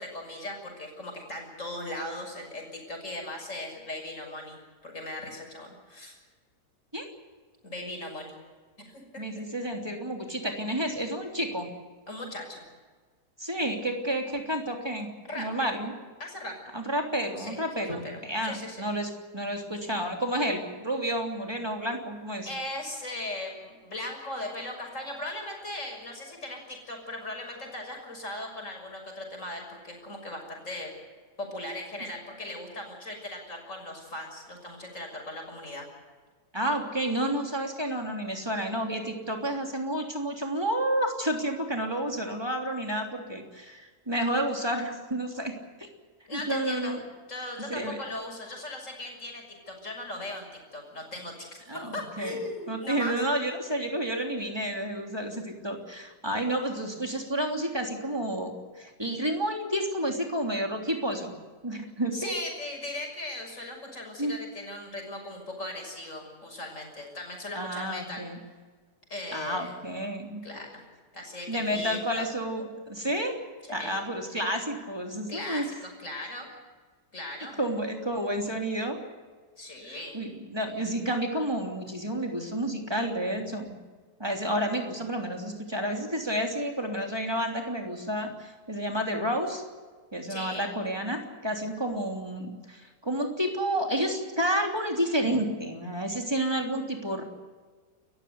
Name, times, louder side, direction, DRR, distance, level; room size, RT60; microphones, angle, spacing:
voice 1, 0.0-6.1 7.6-8.3 8.8-9.2 12.1-12.6 15.2-15.5 16.2-16.6 17.4-18.9 22.5-30.9 31.4-35.9 46.3-46.9 47.3-53.1 62.1-68.2 69.1-69.7 70.4-70.8 71.1-72.3 73.7-74.0 75.3-76.5 77.1-77.6 79.6-80.2 90.3-90.6, left 1 dB, 45° left, 2 dB, 6.6 m, -38 dB
voice 2, 9.2-11.7 13.4-15.1 15.3-15.9 16.7-22.5 36.5-45.9 46.3-47.0 47.7-48.0 51.7-52.4 52.7-61.3 61.6-62.3 64.2-64.3 67.5-68.4 69.3-70.4 71.5-73.4 73.7-75.7 77.6-79.0 79.9-83.8 84.2-89.6 90.1-97.2, right 1 dB, 15° right, 2 dB, 3.3 m, -30 dB
29.5 x 15.0 x 8.2 m, 1.5 s
omnidirectional pair, 1.8 m